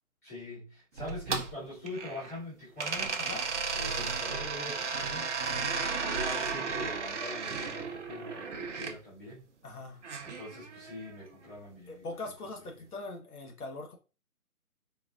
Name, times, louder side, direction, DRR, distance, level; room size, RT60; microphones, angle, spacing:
voice 1, 0.2-3.2 3.7-9.4 10.2-12.1, left 1 dB, 10° left, 1.0 m, -43 dB
sound 1, 1.0-2.4 2.8-8.9 10.0-11.2, right 5 dB, 55° right, 0.5 m, -34 dB
voice 2, 3.2-3.5 5.4-5.7 9.6-10.0 11.9-14.0, left 2 dB, 75° left, 1.1 m, -41 dB
3.8 x 2.4 x 2.4 m
hypercardioid pair, 175°, 45 cm